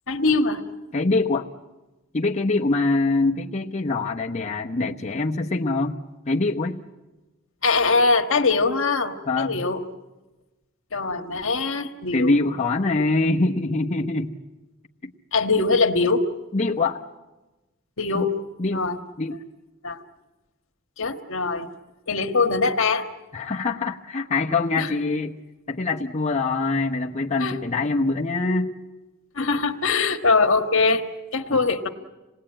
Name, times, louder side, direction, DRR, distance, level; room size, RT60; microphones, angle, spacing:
voice 1, 0.1-0.6 7.6-9.8 10.9-12.3 15.3-16.3 18.0-18.4 18.7-19.0 19.8-20.0 21.0-21.7 22.1-23.1 24.8-24.9 27.4-27.6 29.3-31.0 31.3-31.9, left 4 dB, 65° left, 6 dB, 1.6 m, -22 dB
voice 2, 0.9-1.5 2.1-6.0 6.3-6.8 9.3-9.5 12.1-14.3 15.0-15.1 16.5-17.0 18.1-18.3 18.6-18.9 19.2-19.4 23.3-25.3 25.7-28.8 31.5-31.6, left 3 dB, 35° left, -1 dB, 1.0 m, -24 dB
27.0 x 19.5 x 8.9 m, 1.1 s
head